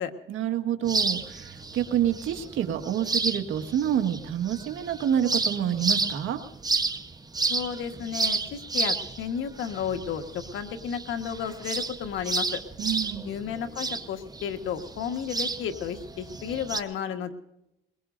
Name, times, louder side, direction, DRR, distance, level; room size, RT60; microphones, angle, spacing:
voice 1, 0.3-6.4 12.8-13.3, right 10 dB, 80° right, 6 dB, 1.7 m, -28 dB
sound 1, 0.8-16.8, right 3 dB, 20° right, 1.0 m, -31 dB
voice 2, 7.5-12.6 13.2-17.3, left 8 dB, 85° left, 7 dB, 1.5 m, -33 dB
22.5 x 22.0 x 2.6 m, 0.86 s
cardioid pair, 90°, 20 cm